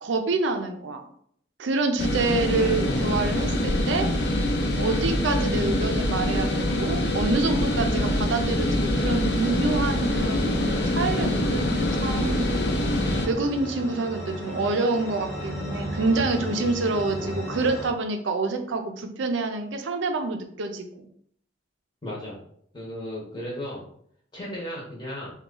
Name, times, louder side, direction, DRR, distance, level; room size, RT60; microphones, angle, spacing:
voice 1, 0.0-1.1 1.6-4.1 4.8-12.6 13.2-21.1, right 3 dB, 75° right, 6 dB, 0.5 m, -27 dB
sound 1, 2.0-13.3, left 1 dB, 55° left, 0.5 m, -25 dB
sound 2, 9.0-17.9, equal, 75° left, 1.0 m, -36 dB
voice 2, 22.0-22.4 22.7-23.8 24.3-25.3, equal, 25° left, -4 dB, 0.8 m, -35 dB
2.9 x 2.3 x 3.7 m, 0.66 s
head